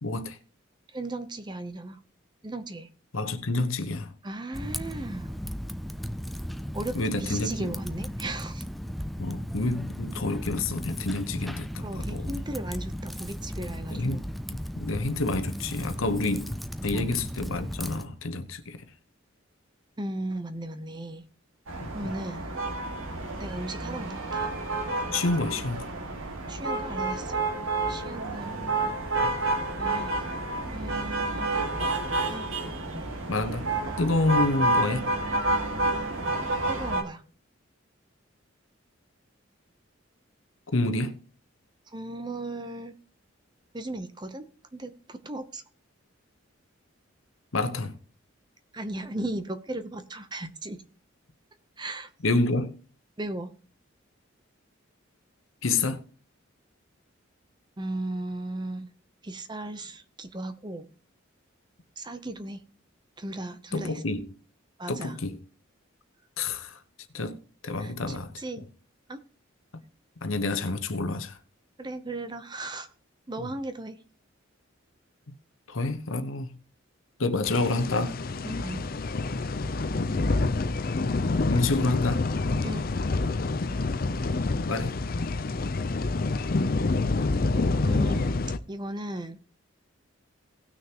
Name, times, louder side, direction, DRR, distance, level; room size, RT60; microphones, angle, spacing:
voice 1, 0.0-0.4 3.1-4.1 6.9-7.7 9.2-12.3 13.9-14.2 14.5-18.8 21.8-21.9 25.1-25.9 29.2-29.4 33.3-35.1 40.7-41.2 47.5-48.0 52.2-52.8 55.6-56.0 63.7-64.3 64.9-65.4 66.4-66.7 67.1-67.4 67.6-68.3 70.2-71.4 73.4-73.5 75.7-76.6 77.2-78.2 80.0-80.4 81.5-82.3 84.0-84.3 84.7-85.0, left 2 dB, 80° left, 1.0 m, -28 dB
voice 2, 0.9-2.0 2.4-2.9 4.2-5.4 6.7-8.6 11.8-14.2 16.9-17.1 20.0-21.2 21.9-22.5 23.4-24.5 26.5-27.4 27.9-28.6 29.8-30.2 30.7-31.7 32.3-32.5 36.7-37.2 41.9-43.0 43.7-45.6 48.7-50.8 51.8-52.1 53.2-53.5 57.8-58.9 59.2-60.8 62.0-62.6 63.2-64.0 64.8-65.2 67.8-68.6 69.1-69.2 71.8-72.9 73.3-74.0 78.4-78.9 82.6-82.9 87.8-88.4 88.7-89.4, right 1 dB, 20° right, 0.8 m, -36 dB
Typing, 4.5-18.0, equal, ahead, 0.4 m, -36 dB
sound 1, 21.7-37.0, right 2 dB, 85° right, 1.9 m, -29 dB
sound 2, 77.4-88.6, left 3 dB, 45° left, 0.5 m, -27 dB
18.0 x 6.3 x 3.0 m
head